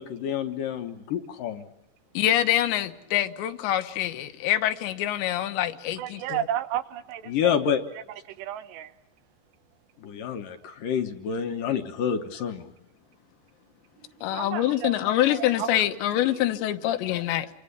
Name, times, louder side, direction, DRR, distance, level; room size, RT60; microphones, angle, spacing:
voice 1, 0.0-1.7 7.3-7.8 10.0-12.7, left 8 dB, 65° left, 2.4 m, -28 dB
voice 2, 2.2-6.4 14.2-17.5, left 13 dB, 85° left, 3.4 m, -25 dB
voice 3, 6.0-7.5 8.3-8.9 14.2-16.0 16.3-16.4 16.9-17.0 17.4-17.5, right 10 dB, 80° right, 3.2 m, -33 dB
27.0 x 25.5 x 6.8 m
omnidirectional pair, 5.0 m